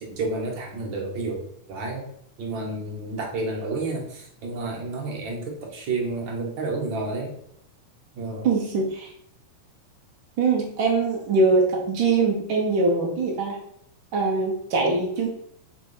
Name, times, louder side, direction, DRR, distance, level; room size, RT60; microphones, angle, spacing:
voice 1, 0.0-1.4 1.7-2.0 2.4-7.3 8.1-8.5, right 3 dB, 55° right, 0 dB, 1.4 m, -30 dB
voice 2, 8.4-9.1 10.4-13.6 14.1-15.3, right 3 dB, 75° right, -1 dB, 1.1 m, -22 dB
5.0 x 4.3 x 4.8 m, 0.69 s
omnidirectional pair, 3.7 m